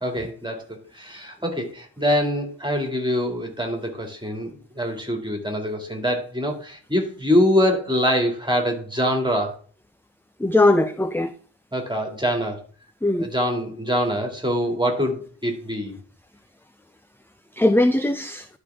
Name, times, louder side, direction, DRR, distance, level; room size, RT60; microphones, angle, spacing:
voice 1, 0.0-9.5 11.7-12.6 13.2-16.0, equal, 10° right, 2.4 m, -24 dB
voice 2, 10.4-11.3 13.0-13.3 17.6-18.5, left 2 dB, 5° left, 0.4 m, -19 dB
12.0 x 5.0 x 3.6 m
wide cardioid pair, 50°, 45 cm